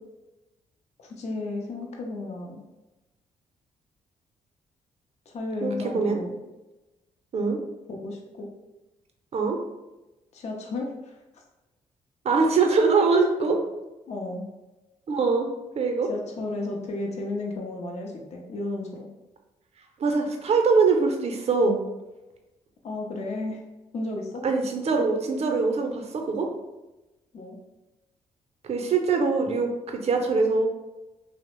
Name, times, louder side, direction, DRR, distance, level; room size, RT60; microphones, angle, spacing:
voice 1, 1.0-2.6 5.3-6.4 7.9-8.5 10.3-10.9 11.3-11.4 14.1-14.5 16.1-19.1 22.8-23.6 23.9-24.4 27.3-27.6, left 2 dB, 50° left, 0 dB, 0.5 m, -33 dB
voice 2, 5.6-6.2 7.3-7.6 9.3-9.6 12.2-13.6 15.1-16.1 20.0-21.8 24.4-26.5 28.7-30.7, right 4 dB, 50° right, 3 dB, 0.6 m, -23 dB
2.9 x 2.0 x 2.9 m, 1.0 s
supercardioid pair, 55°, 14 cm